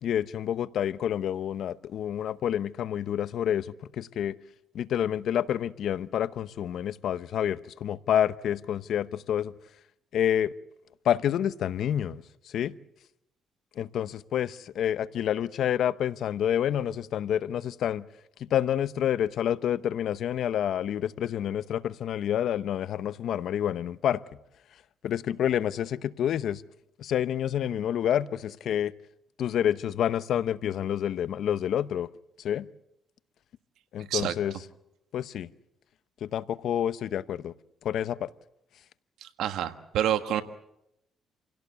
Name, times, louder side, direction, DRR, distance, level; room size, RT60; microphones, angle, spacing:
voice 1, 0.0-4.3 4.7-9.5 10.1-10.5 11.0-12.8 13.8-18.1 18.4-24.2 25.0-26.6 27.0-28.9 29.4-32.1 32.4-32.7 33.9-34.5 35.1-35.5 36.2-37.5 37.8-38.3, left 10 dB, 70° left, 0.8 m, -28 dB
voice 2, 39.2-40.4, right 11 dB, 85° right, 1.4 m, -28 dB
27.5 x 17.0 x 8.2 m
cardioid pair, 90°, 0 cm